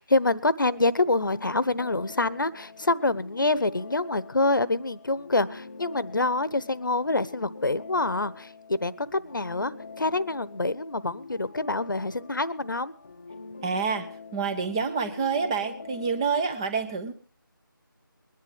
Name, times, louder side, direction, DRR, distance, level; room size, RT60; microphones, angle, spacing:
voice 1, 0.0-12.9, left 2 dB, 65° left, 17 dB, 1.1 m, -26 dB
sound 1, 0.6-16.2, left 4 dB, 35° left, 0.9 m, -45 dB
voice 2, 13.6-17.1, right 5 dB, 15° right, 7 dB, 1.0 m, -28 dB
21.5 x 11.0 x 3.6 m, 0.40 s
figure-of-eight pair, 160°, 12 cm